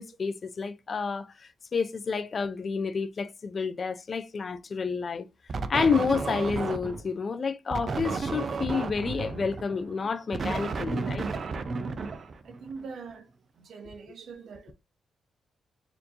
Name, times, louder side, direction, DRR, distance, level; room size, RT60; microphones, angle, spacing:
voice 1, 0.0-5.3 5.7-11.3, left 5 dB, 35° left, 0.3 m, -29 dB
sound 1, 5.5-7.1 7.7-12.8, right 4 dB, 35° right, 0.4 m, -33 dB
voice 2, 12.4-13.2 13.6-14.7, right 5 dB, 60° right, 0.7 m, -43 dB
4.3 x 2.6 x 2.8 m
wide cardioid pair, 170°, 0 cm